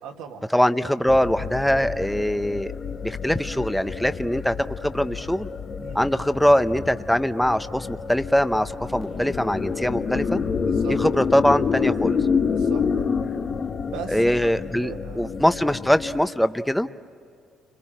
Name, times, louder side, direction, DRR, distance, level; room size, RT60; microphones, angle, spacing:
voice 1, 0.0-0.4 5.8-6.0 10.6-11.0 12.5-12.9 13.8-15.3, right 7 dB, 85° right, 1 dB, 2.1 m, -38 dB
voice 2, 0.5-2.7 3.0-4.6 4.8-5.5 5.9-10.4 10.9-12.2 14.1-16.9, equal, 5° left, 11 dB, 0.8 m, -22 dB
sound 1, 1.1-16.3, left 5 dB, 50° left, 1.4 m, -28 dB
30.0 x 21.0 x 8.9 m, 2.2 s
hypercardioid pair, 55°, 0 cm